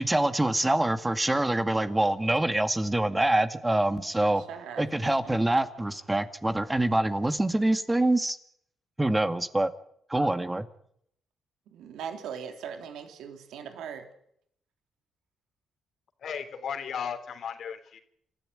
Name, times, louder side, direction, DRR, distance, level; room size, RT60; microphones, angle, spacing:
voice 1, 0.0-4.4 4.8-8.4 9.0-9.7 10.1-10.7, right 1 dB, 10° right, 9 dB, 2.0 m, -25 dB
voice 2, 4.2-4.9 11.7-14.1, right 7 dB, 85° right, 5 dB, 3.2 m, -40 dB
voice 3, 16.2-18.0, left 7 dB, 60° left, 8 dB, 3.5 m, -35 dB
28.0 x 14.0 x 9.8 m, 0.71 s
cardioid pair, 90°, 0 cm